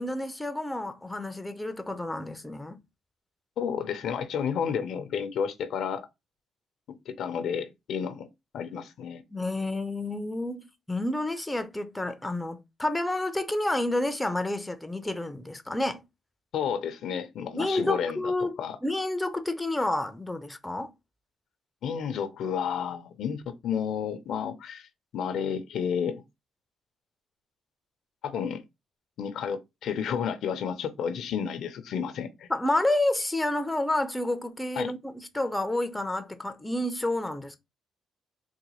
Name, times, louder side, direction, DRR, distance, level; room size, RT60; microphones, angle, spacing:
voice 1, 0.0-2.8 9.3-16.1 17.5-20.9 32.5-37.6, left 1 dB, 10° left, 0.5 m, -29 dB
voice 2, 3.6-6.1 7.1-8.3 8.5-9.2 16.5-18.2 18.6-18.8 21.8-24.9 25.1-26.2 28.2-28.6 29.2-32.5 34.8-34.9, left 7 dB, 75° left, 0.5 m, -31 dB
3.9 x 2.2 x 3.0 m
cardioid pair, 90°, 0 cm